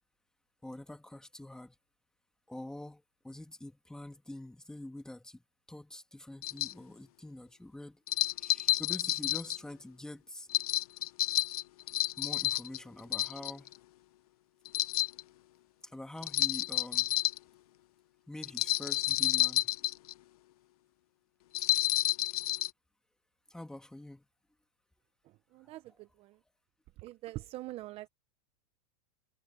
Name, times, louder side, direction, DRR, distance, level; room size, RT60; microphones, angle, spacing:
voice 1, 0.6-1.8 2.5-8.0 8.4-10.5 12.2-13.8 15.8-17.1 18.3-19.9 23.5-24.3 25.6-26.0, left 1 dB, 5° left, 2.0 m, -46 dB
sound 1, 6.4-6.7 8.1-9.6 10.5-12.8 13.1-13.7 14.7-15.2 16.2-17.4 18.4-20.1 21.5-22.7, left 15 dB, 70° left, 0.8 m, -30 dB
voice 2, 25.5-26.4 27.0-28.1, right 17 dB, 30° right, 0.7 m, -44 dB
supercardioid pair, 145°, 19 cm